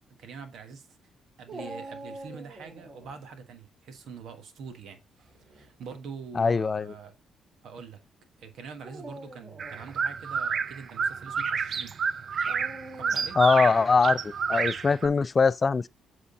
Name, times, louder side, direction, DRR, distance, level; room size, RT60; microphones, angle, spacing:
voice 1, 0.2-0.9 1.4-7.1 7.6-8.0 8.4-11.9 13.0-13.4, right 5 dB, 75° right, 1.4 m, -44 dB
Dog, 1.5-3.1 5.2-5.7 6.5-6.6 8.7-10.0 12.4-13.4, right 2 dB, 35° right, 2.8 m, -44 dB
voice 2, 6.4-6.9 13.4-15.9, left 4 dB, 35° left, 0.3 m, -22 dB
sound 1, 9.6-15.1, right 6 dB, 50° right, 0.5 m, -30 dB
8.0 x 3.7 x 3.9 m
cardioid pair, 90°, 0 cm